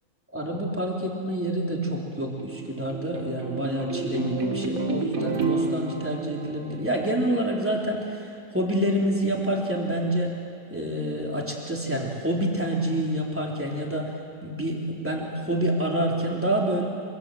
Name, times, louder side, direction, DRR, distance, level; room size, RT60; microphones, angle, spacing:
voice 1, 0.3-10.3 10.7-14.1 14.4-16.8, right 1 dB, 10° right, -2 dB, 3.6 m, -27 dB
sound 1, 2.1-7.5, right 3 dB, 90° right, 2.4 m, -30 dB
25.5 x 25.5 x 7.9 m, 2.4 s
omnidirectional pair, 1.4 m